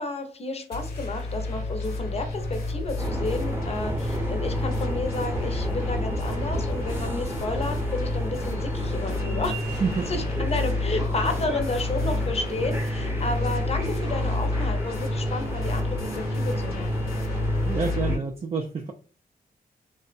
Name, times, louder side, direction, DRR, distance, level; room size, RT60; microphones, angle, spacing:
voice 1, 0.0-9.7 10.1-16.9, left 2 dB, 40° left, 0.6 m, -32 dB
sound 1, 0.7-18.2, left 2 dB, 70° left, 0.8 m, -29 dB
sound 2, 3.0-18.2, right 1 dB, 15° right, 0.7 m, -34 dB
voice 2, 17.7-18.9, right 4 dB, 35° right, 0.3 m, -28 dB
2.6 x 2.0 x 2.5 m
cardioid pair, 65°, 17 cm